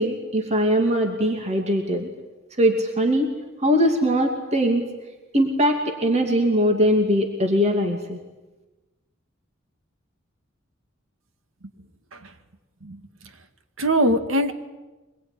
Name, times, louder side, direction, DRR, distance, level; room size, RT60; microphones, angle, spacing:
voice 1, 0.0-2.1 2.6-3.3 3.6-4.9 5.3-8.2, equal, 35° right, 3 dB, 2.8 m, -21 dB
voice 2, 12.8-13.3 13.8-14.5, right 1 dB, 85° right, 9 dB, 2.0 m, -23 dB
25.0 x 21.5 x 10.0 m, 1.1 s
head